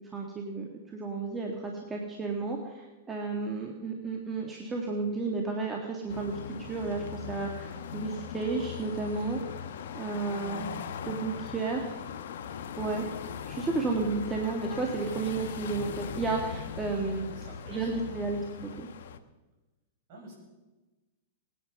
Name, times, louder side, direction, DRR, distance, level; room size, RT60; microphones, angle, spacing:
voice 1, 0.1-9.4 9.9-10.7 11.0-12.0 12.8-13.0 13.5-17.3 17.7-18.9, right 3 dB, 20° right, 0 dB, 1.9 m, -32 dB
sound 1, 6.1-19.2, left 7 dB, 70° left, 1.1 m, -40 dB
voice 2, 17.3-18.3 20.1-20.3, right 2 dB, 50° right, -1 dB, 6.5 m, -49 dB
19.0 x 10.0 x 5.4 m, 1.2 s
hypercardioid pair, 130°, 0 cm